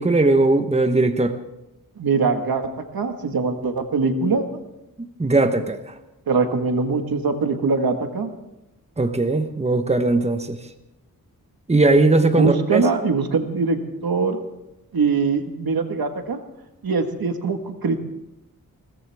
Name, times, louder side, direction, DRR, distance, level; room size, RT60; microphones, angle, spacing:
voice 1, 0.0-1.4 5.2-5.8 9.0-10.6 11.7-12.9, right 2 dB, 20° right, 7 dB, 1.1 m, -19 dB
voice 2, 2.0-2.7 2.9-4.4 6.3-8.3 12.3-14.4 14.9-16.4 16.8-18.0, right 4 dB, 85° right, 6 dB, 1.6 m, -22 dB
22.0 x 17.5 x 3.5 m, 0.92 s
wide cardioid pair, 100°, 35 cm